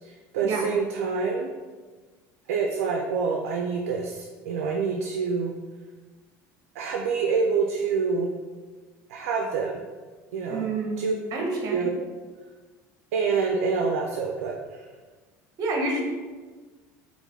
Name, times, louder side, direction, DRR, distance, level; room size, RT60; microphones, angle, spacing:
voice 1, 0.0-1.5 2.5-5.6 6.8-8.3 9.1-9.8 10.3-10.7 11.0-11.1 11.7-11.9 13.1-14.8, right 5 dB, 85° right, 2 dB, 0.4 m, -26 dB
voice 2, 10.5-11.0 11.3-11.8 15.6-16.0, right 2 dB, 50° right, 0 dB, 1.0 m, -28 dB
4.7 x 2.5 x 3.2 m, 1.3 s
supercardioid pair, 95°, 8 cm